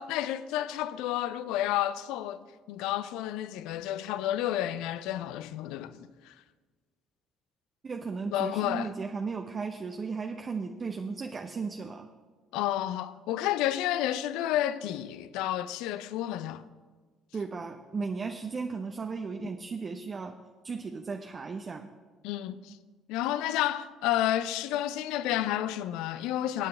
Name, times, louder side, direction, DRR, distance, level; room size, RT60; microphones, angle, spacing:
voice 1, 0.0-6.0 6.3-6.4 8.3-8.9 12.5-16.6 22.2-22.8 23.1-26.7, left 12 dB, 60° left, 0.6 m, -31 dB
voice 2, 7.8-12.1 17.3-20.4 20.6-21.9, right 4 dB, 35° right, 0.8 m, -35 dB
23.0 x 9.6 x 3.4 m
figure-of-eight pair, 50°, 0 cm